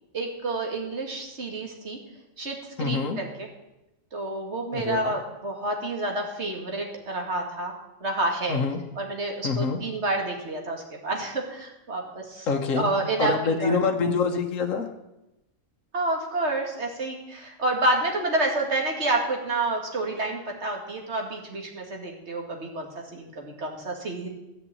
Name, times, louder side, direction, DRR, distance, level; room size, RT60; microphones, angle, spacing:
voice 1, 0.1-2.0 2.4-3.5 4.1-7.7 8.0-8.6 9.0-13.3 13.6-13.8 15.9-24.3, right 2 dB, 55° right, 1 dB, 2.4 m, -29 dB
voice 2, 2.8-3.2 4.7-5.1 8.5-8.8 9.4-9.8 12.5-12.9 13.2-14.9, left 4 dB, 70° left, 3 dB, 1.6 m, -25 dB
14.0 x 6.1 x 8.6 m, 0.94 s
omnidirectional pair, 1.4 m